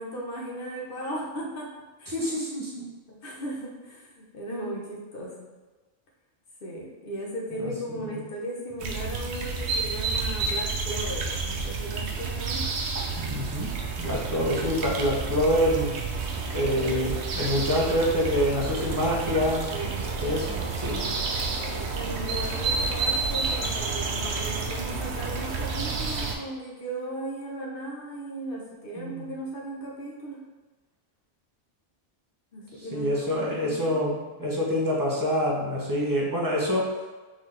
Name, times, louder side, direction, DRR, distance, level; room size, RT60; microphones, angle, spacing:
voice 1, 0.0-1.7 2.0-2.1 3.1-5.5 6.6-12.7 19.7-20.1 21.6-30.4 32.5-34.0, right 1 dB, 55° left, -3 dB, 1.2 m, -36 dB
voice 2, 2.1-2.9 8.1-8.2 13.2-13.7 14.0-16.0 16.5-19.7 20.2-21.0 29.0-29.3 32.9-36.9, equal, 20° right, -4 dB, 0.8 m, -26 dB
sound 1, 8.8-26.4, right 4 dB, 80° right, 0.9 m, -30 dB
4.0 x 3.7 x 3.3 m, 1.3 s
omnidirectional pair, 1.1 m